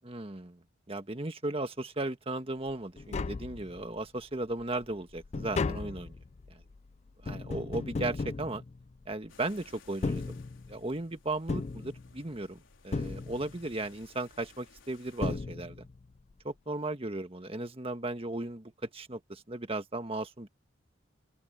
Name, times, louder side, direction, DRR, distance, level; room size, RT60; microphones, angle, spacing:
voice 1, 0.0-0.6 0.9-6.1 7.2-8.6 9.1-10.4 10.7-15.9 16.4-20.5, right 2 dB, 30° right, 1.5 m, -36 dB
Tap, 2.7-2.8 3.0-4.1 4.5-9.3 9.9-10.9 11.5-12.5 12.9-13.8 14.8-14.9 15.2-16.0 16.3-16.4, left 3 dB, 35° left, 0.4 m, -36 dB
sound 1, 9.3-15.4, left 5 dB, 90° left, 4.5 m, -60 dB
open air
head